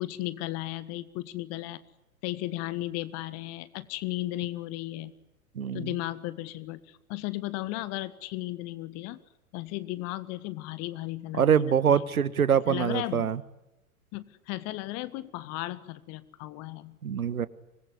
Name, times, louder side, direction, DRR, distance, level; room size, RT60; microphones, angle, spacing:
voice 1, 0.0-1.8 2.2-5.1 5.7-9.2 9.5-12.0 12.7-13.3 14.1-17.0, left 17 dB, 35° left, 15 dB, 1.6 m, -35 dB
voice 2, 5.5-5.9 11.4-13.4 17.0-17.5, right 8 dB, 75° right, 17 dB, 1.4 m, -24 dB
25.0 x 21.0 x 9.7 m, 0.96 s
figure-of-eight pair, 95°, 43 cm